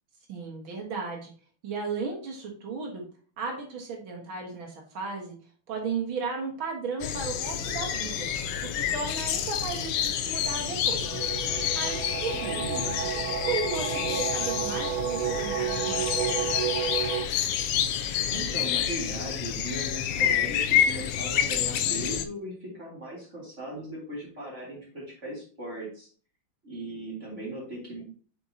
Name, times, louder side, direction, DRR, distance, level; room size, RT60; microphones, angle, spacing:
voice 1, 0.3-1.3 1.6-3.0 3.4-5.3 5.7-8.3 8.7-11.2 11.7-12.6 13.3-16.6, right 4 dB, 70° right, 1 dB, 2.3 m, -35 dB
sound 1, 7.0-22.3, left 9 dB, 75° left, 1.4 m, -28 dB
sound 2, 11.0-17.3, right 9 dB, 90° right, 1.5 m, -31 dB
voice 2, 12.3-13.0 18.3-26.1 26.6-28.0, right 1 dB, 35° right, -4 dB, 3.0 m, -38 dB
7.9 x 5.5 x 2.8 m, 0.43 s
omnidirectional pair, 2.3 m